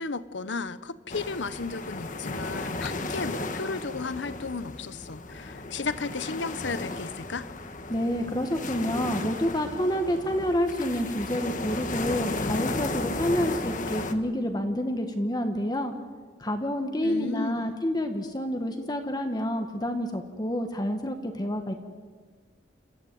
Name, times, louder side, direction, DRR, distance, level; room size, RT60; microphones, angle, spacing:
voice 1, 0.0-7.5 17.0-17.7, left 4 dB, 75° left, 15 dB, 1.0 m, -34 dB
sound 1, 1.1-14.1, left 2 dB, 45° left, 1.5 m, -34 dB
voice 2, 7.9-15.9 16.4-21.7, equal, 20° left, 5 dB, 1.5 m, -28 dB
28.0 x 14.5 x 9.4 m, 1.5 s
head